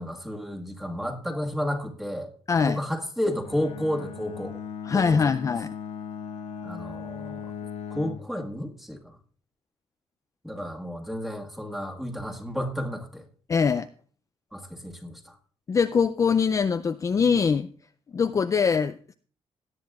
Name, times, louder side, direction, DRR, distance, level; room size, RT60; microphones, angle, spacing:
voice 1, 0.0-2.3 2.6-4.6 4.9-5.2 6.6-7.5 7.9-9.2 10.4-13.2 14.5-15.4, equal, ahead, 1 dB, 1.6 m, -32 dB
voice 2, 2.5-2.8 4.8-5.7 13.5-13.9 15.7-17.7 18.1-19.1, left 6 dB, 30° left, 10 dB, 0.4 m, -23 dB
Bowed string instrument, 3.4-8.3, left 7 dB, 90° left, 0.9 m, -38 dB
17.5 x 10.5 x 2.4 m, 0.43 s
cardioid pair, 130°, 10 cm